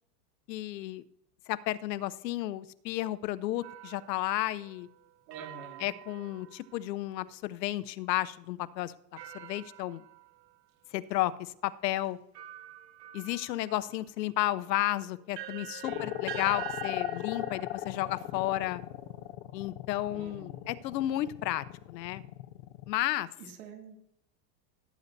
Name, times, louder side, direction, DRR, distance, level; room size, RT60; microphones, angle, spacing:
voice 1, 0.5-1.0 1.5-4.9 5.8-10.0 10.9-12.2 13.1-18.8 19.5-22.2 22.9-23.3, left 15 dB, 85° left, 15 dB, 0.8 m, -32 dB
sound 1, 3.6-7.1 9.2-10.6 11.4-11.5 12.3-19.2, right 12 dB, 90° right, 1.2 m, -47 dB
voice 2, 5.3-5.9 15.8-16.2 20.1-20.7 23.4-24.0, right 6 dB, 55° right, 2 dB, 2.7 m, -46 dB
sound 2, 15.8-22.9, left 14 dB, 45° left, 0.6 m, -38 dB
17.0 x 9.2 x 2.7 m, 0.75 s
supercardioid pair, 160°, 49 cm